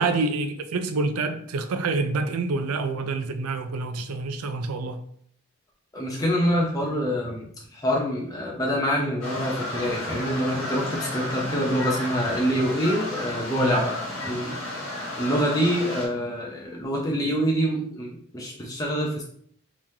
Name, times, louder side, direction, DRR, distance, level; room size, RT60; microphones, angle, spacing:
voice 1, 0.0-5.0 13.6-13.8, right 3 dB, 90° right, 0.4 m, -27 dB
voice 2, 5.9-14.0 14.2-14.5 15.2-19.2, equal, 15° left, 0.6 m, -26 dB
sound 1, 9.2-16.1, left 1 dB, 60° left, 1.4 m, -32 dB
3.7 x 3.1 x 2.7 m
head